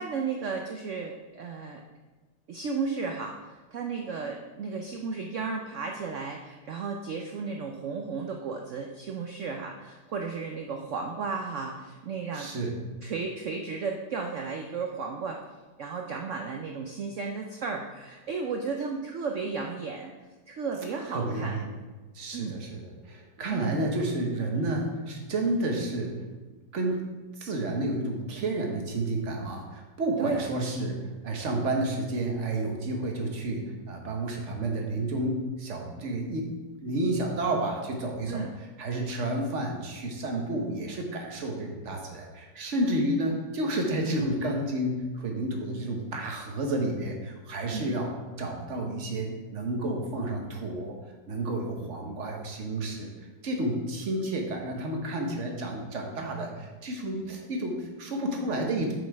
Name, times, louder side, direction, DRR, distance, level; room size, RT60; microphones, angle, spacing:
voice 1, 0.0-1.8 2.5-12.5 13.0-15.5 15.8-20.1 20.5-21.6 22.3-22.6 23.5-23.8 30.2-30.5 38.3-38.5 47.7-47.9, right 4 dB, 85° right, 2 dB, 0.6 m, -34 dB
voice 2, 12.3-12.7 21.1-21.7 22.1-26.3 26.7-36.5 36.8-38.4 38.8-48.1 48.4-50.9 51.3-58.9, right 1 dB, 45° right, 2 dB, 1.3 m, -31 dB
7.2 x 5.3 x 4.8 m, 1.2 s
omnidirectional pair, 2.0 m